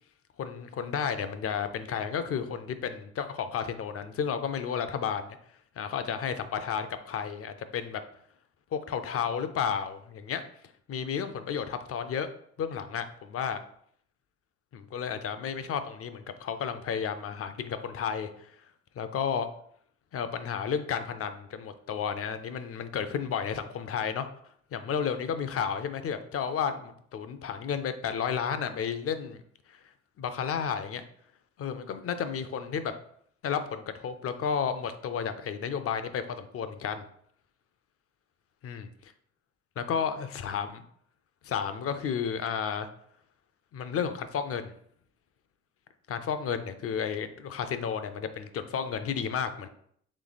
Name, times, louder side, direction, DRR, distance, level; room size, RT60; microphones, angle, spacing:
voice 1, 0.4-5.4 5.8-8.0 8.7-10.4 10.9-12.3 12.6-13.6 14.7-18.5 19.0-19.5 20.1-24.3 24.7-29.4 29.7-29.8 30.2-31.0 31.6-32.9 33.4-37.0 38.6-38.8 39.8-40.9 41.4-42.9 43.7-44.7 46.1-49.7, left 7 dB, 50° left, 10 dB, 0.5 m, -32 dB
3.2 x 3.2 x 4.0 m, 0.65 s
cardioid pair, 90°, 30 cm